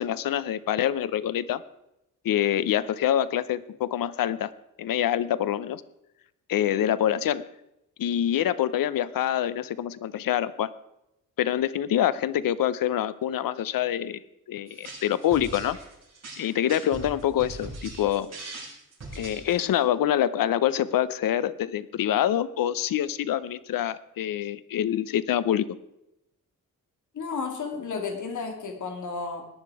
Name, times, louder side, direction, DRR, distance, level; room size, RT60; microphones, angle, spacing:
voice 1, 0.0-1.6 2.2-4.5 4.8-5.8 6.5-7.5 8.0-10.7 11.4-14.2 14.5-15.8 16.4-18.3 19.1-25.7, left 11 dB, 90° left, 17 dB, 0.7 m, -26 dB
sound 1, 14.7-19.8, right 3 dB, 50° right, 6.2 m, -40 dB
voice 2, 27.1-29.5, left 4 dB, 60° left, 4 dB, 2.5 m, -32 dB
18.0 x 10.5 x 4.8 m, 0.86 s
wide cardioid pair, 130°, 33 cm